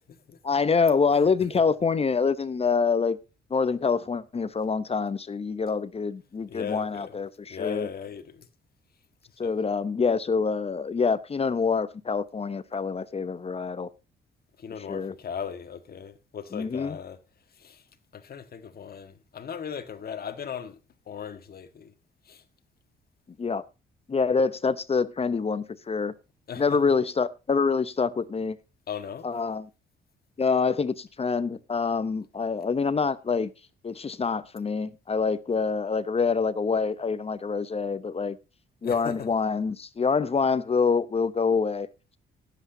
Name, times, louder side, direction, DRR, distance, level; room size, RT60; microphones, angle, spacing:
voice 1, 0.4-3.2 3.5-7.9 9.4-13.9 14.9-15.1 16.5-17.0 23.4-23.6 24.1-26.1 26.6-28.6 29.2-29.7 30.4-33.5 33.8-38.4 38.8-41.9, left 5 dB, 30° left, 0.8 m, -26 dB
voice 2, 6.5-7.2 7.5-8.5 9.4-9.5 14.6-17.2 17.6-17.8 18.1-20.8 21.1-21.9 22.3-22.4 26.5-26.6 28.9-29.3 38.8-39.3, left 7 dB, 50° left, 1.6 m, -37 dB
19.0 x 8.1 x 2.7 m
cardioid pair, 90°, 20 cm